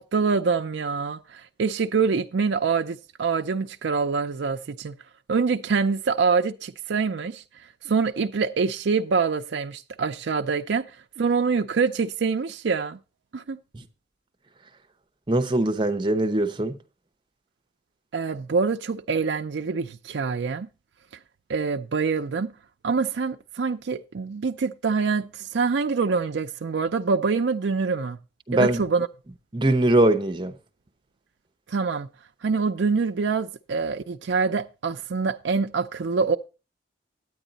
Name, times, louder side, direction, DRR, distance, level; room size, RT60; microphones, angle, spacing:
voice 1, 0.0-4.9 5.3-7.4 7.8-10.8 11.2-13.0 13.3-13.6 18.1-20.7 21.5-22.5 22.8-28.2 28.5-29.1 31.7-32.1 32.4-36.4, right 5 dB, 70° right, 0.5 m, -25 dB
voice 2, 15.3-16.8 28.5-28.8 29.5-30.5, right 1 dB, 25° right, 0.7 m, -21 dB
9.4 x 9.0 x 4.0 m
head